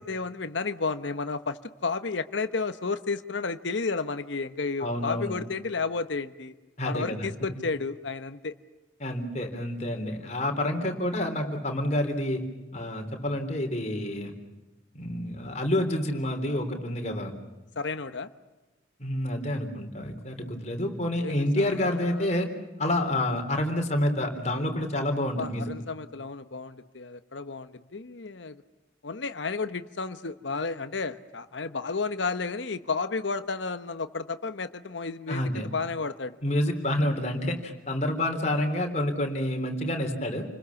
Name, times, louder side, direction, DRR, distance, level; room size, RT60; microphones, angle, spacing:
voice 1, 0.0-6.5 6.8-8.5 17.8-18.3 21.2-22.3 25.4-28.6 29.0-36.4, left 4 dB, 80° left, 10 dB, 1.1 m, -32 dB
voice 2, 4.8-5.3 6.8-7.3 9.0-12.4 12.7-14.3 14.9-17.3 19.0-22.5 22.8-25.7 35.3-35.7 36.4-40.5, left 1 dB, 40° left, 4 dB, 3.6 m, -28 dB
29.5 x 21.0 x 7.2 m, 1.1 s
head